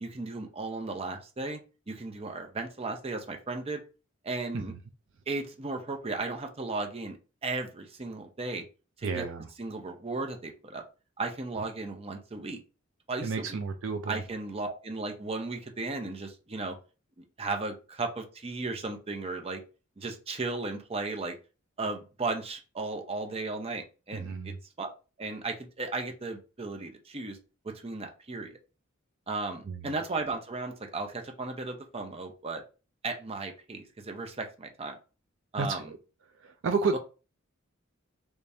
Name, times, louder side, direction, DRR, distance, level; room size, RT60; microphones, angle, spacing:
voice 1, 0.0-1.6 1.9-3.8 4.2-4.7 5.3-7.2 7.4-8.6 9.0-9.2 9.6-10.8 11.2-12.6 13.1-13.5 14.1-16.8 17.2-19.6 20.0-21.4 21.8-24.9 25.2-27.4 27.6-28.6 29.3-32.6 33.0-34.9 35.5-35.9 36.9-37.0, right 3 dB, 30° right, 4 dB, 0.6 m, -35 dB
voice 2, 9.0-9.5 13.2-14.2 24.1-24.6 29.6-29.9 35.6-36.0 36.4-37.0, right 4 dB, 65° right, 7 dB, 0.4 m, -31 dB
3.3 x 3.3 x 2.6 m, 0.33 s
head